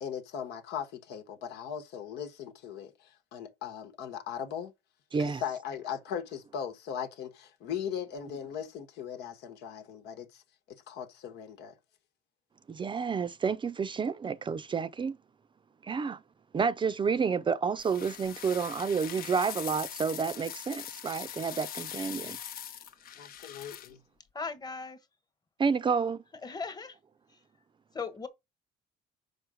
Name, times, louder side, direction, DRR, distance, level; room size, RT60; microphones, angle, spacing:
voice 1, 0.0-4.7 5.2-10.4 10.7-11.7 23.2-24.0, left 8 dB, 80° left, 1.3 m, -39 dB
voice 2, 5.1-5.4 12.7-15.2 15.8-16.2 16.5-22.4 25.6-26.2, right 5 dB, 30° right, 0.5 m, -30 dB
sound 1, 17.8-23.9, left 10 dB, 60° left, 0.9 m, -42 dB
voice 3, 24.3-25.0 26.4-26.9 27.9-28.3, left 4 dB, 25° left, 1.3 m, -37 dB
5.3 x 4.8 x 6.3 m
cardioid pair, 110°, 17 cm